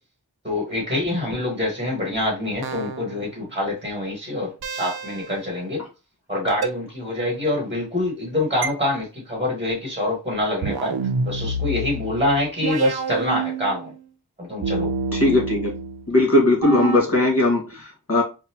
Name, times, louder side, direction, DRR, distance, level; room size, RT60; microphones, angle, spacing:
voice 1, 0.4-5.8 6.3-10.9 11.2-13.9 14.4-14.9, left 1 dB, 15° right, 1.7 m, -25 dB
sound 1, 2.6-3.4 4.6-5.4 6.6-6.7 8.6-8.7 10.6-14.0 14.6-16.1 16.6-17.0, right 4 dB, 75° right, 0.5 m, -28 dB
voice 2, 15.1-15.7 16.1-18.2, left 2 dB, 35° left, 1.9 m, -19 dB
4.0 x 2.2 x 2.9 m
wide cardioid pair, 55°, 38 cm